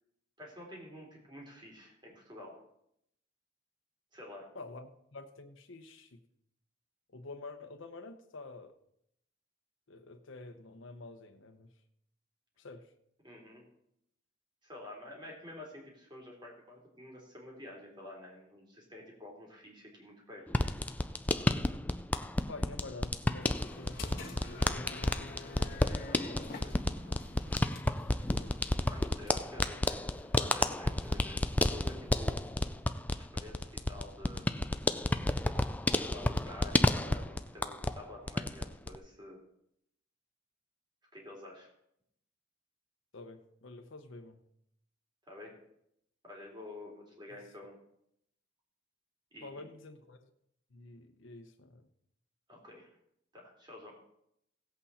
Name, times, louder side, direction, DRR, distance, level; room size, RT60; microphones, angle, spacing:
voice 1, 0.4-2.6 4.1-4.5 13.2-13.6 14.6-20.5 26.3-26.7 28.9-30.0 30.2-32.4 33.1-34.5 35.9-39.4 41.1-41.7 45.3-45.5 46.2-47.8 49.3-49.6 52.5-52.9 53.3-53.9, left 1 dB, 25° right, -1 dB, 3.4 m, -49 dB
voice 2, 4.5-6.2 7.1-8.7 9.9-11.7 12.6-12.9 22.5-25.5 28.2-28.6 43.1-44.4 47.3-47.4 49.4-50.3 50.7-51.9, left 2 dB, 85° left, 5 dB, 0.9 m, -48 dB
sound 1, 20.5-38.0 38.3-39.0, left 1 dB, 10° left, 0.4 m, -31 dB
sound 2, 23.4-32.9, left 3 dB, 50° left, 1.6 m, -50 dB
17.0 x 8.2 x 4.2 m, 0.76 s
head